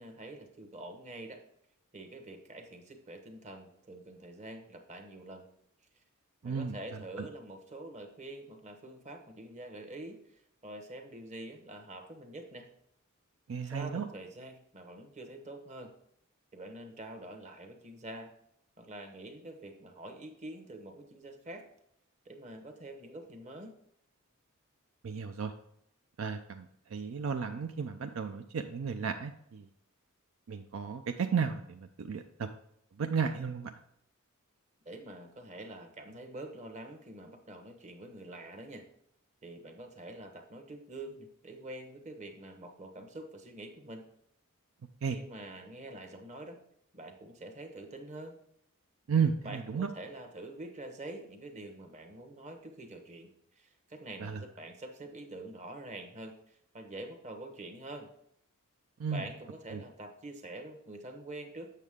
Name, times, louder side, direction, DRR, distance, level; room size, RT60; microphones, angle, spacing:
voice 1, 0.0-1.4 1.9-5.5 6.4-12.7 13.6-15.9 16.5-18.3 18.8-21.7 22.2-23.7 34.8-38.8 39.4-44.0 45.1-46.6 46.9-48.4 49.4-58.1 59.1-61.7, right 1 dB, 35° right, 5 dB, 1.1 m, -46 dB
voice 2, 6.4-6.8 7.2-7.3 13.5-14.1 25.0-25.5 26.2-26.7 26.9-29.7 30.5-32.5 33.0-33.7 45.0-45.2 49.1-49.9 54.2-54.4 59.0-59.2 59.7-59.8, right 6 dB, 65° right, 7 dB, 0.4 m, -33 dB
8.2 x 6.5 x 3.6 m, 0.73 s
head